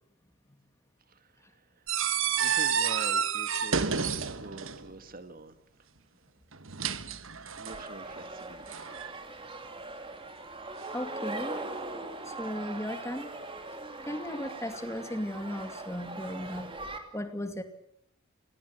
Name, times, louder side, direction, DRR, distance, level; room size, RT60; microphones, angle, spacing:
voice 1, 1.1-1.8 2.4-3.9 4.3-5.6 7.6-8.7, right 2 dB, 40° right, 10 dB, 2.0 m, -45 dB
sound 1, 1.9-4.9 6.5-7.8 8.7-9.1, right 7 dB, 65° right, 1.4 m, -30 dB
sound 2, 7.7-17.0, right 2 dB, 25° right, 2.9 m, -41 dB
voice 2, 10.9-11.6 12.2-13.3 14.0-16.9 17.1-17.6, left 1 dB, 15° left, 8 dB, 2.4 m, -36 dB
28.5 x 18.5 x 8.4 m, 0.70 s
head